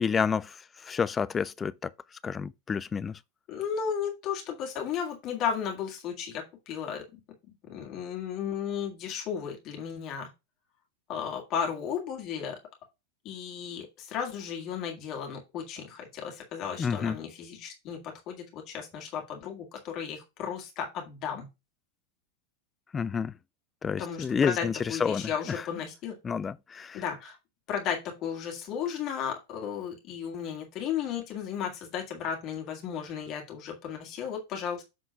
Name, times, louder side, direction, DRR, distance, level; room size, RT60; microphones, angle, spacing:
voice 1, 0.0-1.9 2.2-3.2 16.8-17.2 22.9-23.3 23.8-25.6 26.2-27.0, left 6 dB, 20° left, 0.4 m, -29 dB
voice 2, 3.5-7.2 7.7-10.3 11.1-12.6 13.2-21.5 24.0-26.2 26.9-27.4 27.7-34.8, left 7 dB, 35° left, 2.0 m, -34 dB
7.8 x 3.8 x 5.2 m
figure-of-eight pair, 90°, 0 cm